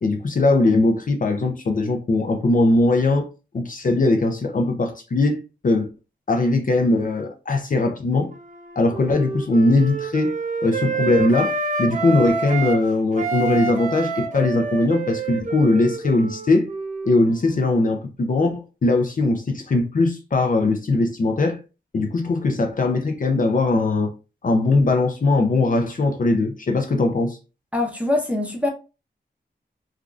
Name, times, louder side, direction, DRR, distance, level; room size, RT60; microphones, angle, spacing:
voice 1, 0.0-3.3 3.5-5.9 6.3-8.3 8.8-10.3 10.6-11.5 11.8-16.7 17.0-21.6 21.9-24.1 24.4-27.4, left 2 dB, 45° left, 0.5 m, -20 dB
Wind instrument woodwind instrument, 8.3-12.8 13.1-17.6, right 4 dB, 45° right, 0.5 m, -28 dB
voice 2, 27.7-28.7, left 2 dB, 10° right, 0.8 m, -23 dB
3.4 x 2.4 x 2.4 m
wide cardioid pair, 120°, 19 cm